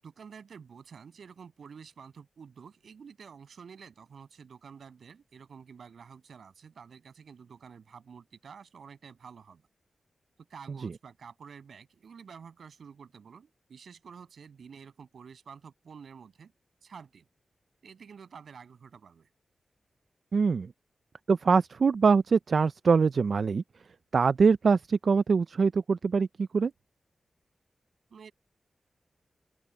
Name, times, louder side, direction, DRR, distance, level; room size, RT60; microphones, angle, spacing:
voice 1, 0.0-9.6 10.4-16.5 16.8-17.3 17.8-19.3 28.1-28.3, right 6 dB, 75° right, 7.7 m, -49 dB
voice 2, 20.3-20.7 21.3-23.6 24.1-26.7, right 5 dB, 55° right, 0.3 m, -24 dB
open air
wide cardioid pair, 155°, 0 cm